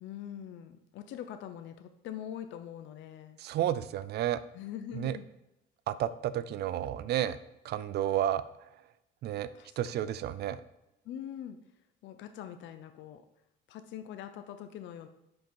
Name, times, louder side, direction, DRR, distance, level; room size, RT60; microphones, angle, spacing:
voice 1, 0.0-3.4 4.5-5.3 9.5-9.8 11.0-11.6 12.0-13.2 13.7-15.1, left 10 dB, 70° left, 9 dB, 0.5 m, -43 dB
voice 2, 3.4-4.4 4.9-5.2 5.9-7.4 7.6-8.4 9.2-9.5 9.8-10.6, right 11 dB, 55° right, 15 dB, 0.4 m, -31 dB
5.3 x 5.2 x 4.5 m, 0.90 s
cardioid pair, 125°, 20 cm